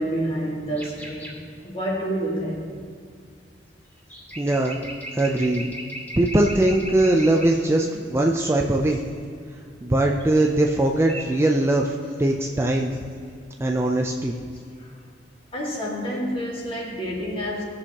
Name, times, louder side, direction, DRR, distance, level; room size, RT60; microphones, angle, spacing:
voice 1, 0.0-2.6 15.5-17.6, equal, 30° left, -3 dB, 2.0 m, -28 dB
sound 1, 0.7-1.4 4.0-7.6 10.2-10.7 11.0-11.3, equal, 10° left, 2.5 m, -38 dB
voice 2, 4.4-4.9 5.2-5.7 6.2-9.0 9.8-12.9 13.6-14.3, right 1 dB, 15° right, 1 dB, 0.4 m, -21 dB
17.0 x 6.4 x 2.9 m, 2.2 s
head